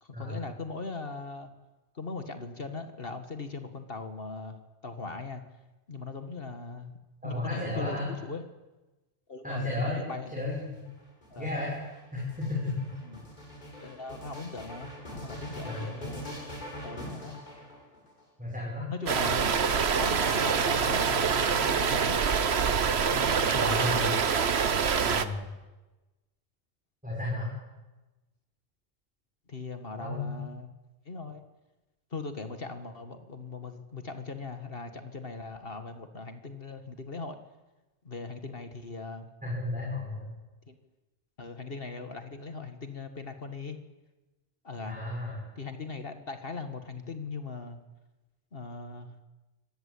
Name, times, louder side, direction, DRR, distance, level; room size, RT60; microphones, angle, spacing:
voice 1, 0.0-1.5 1.9-5.4 5.9-6.9 7.2-8.4 9.3-10.4 11.3-11.5 13.0-13.2 13.8-16.2 16.8-17.4 18.9-19.7 20.0-22.2 23.1-24.3 29.5-30.7 31.1-31.4 32.1-37.4 38.0-39.3 40.7-40.8 41.4-43.8 44.6-45.0 45.6-47.8 48.5-49.1, left 3 dB, 55° left, 8 dB, 2.0 m, -39 dB
voice 2, 7.2-8.1 9.4-10.8 11.4-11.7 12.1-12.7 15.6-15.9 18.4-18.9 23.5-24.1 25.0-25.5 27.0-27.5 30.0-30.4 39.4-40.3 44.8-45.4, left 2 dB, 5° right, -4 dB, 6.3 m, -33 dB
sound 1, 10.3-18.2 19.0-19.9, equal, 40° left, 6.0 m, -43 dB
sound 2, 19.1-25.2, right 6 dB, 70° right, 1.4 m, -25 dB
26.0 x 18.5 x 8.6 m, 1.1 s
omnidirectional pair, 1.1 m